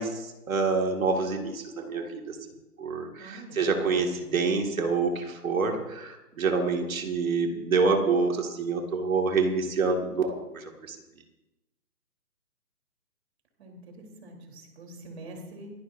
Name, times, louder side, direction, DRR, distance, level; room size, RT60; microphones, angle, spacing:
voice 1, 0.0-2.4 2.8-11.0, right 4 dB, 55° right, 2 dB, 2.3 m, -27 dB
voice 2, 3.2-4.2 13.6-15.7, right 1 dB, 40° right, 1 dB, 3.8 m, -45 dB
28.5 x 10.5 x 2.7 m, 0.99 s
hypercardioid pair, 160°, 48 cm